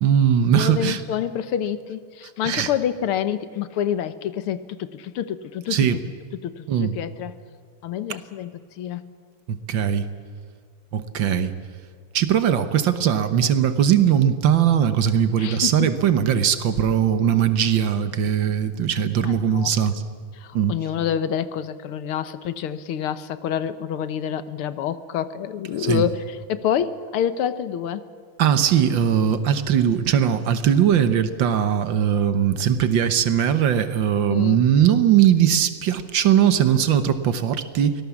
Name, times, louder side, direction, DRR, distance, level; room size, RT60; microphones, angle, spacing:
voice 1, 0.0-1.0 2.4-2.7 5.7-6.0 6.7-6.9 9.5-10.1 10.9-11.5 12.1-19.9 20.5-20.8 25.8-26.0 28.4-38.0, right 9 dB, 65° right, 11 dB, 1.8 m, -20 dB
voice 2, 0.6-5.9 6.4-7.4 7.8-9.1 15.4-15.9 19.2-19.7 20.4-28.0 34.3-34.6, left 9 dB, 85° left, 13 dB, 1.9 m, -27 dB
24.5 x 18.0 x 7.2 m, 2.1 s
omnidirectional pair, 2.3 m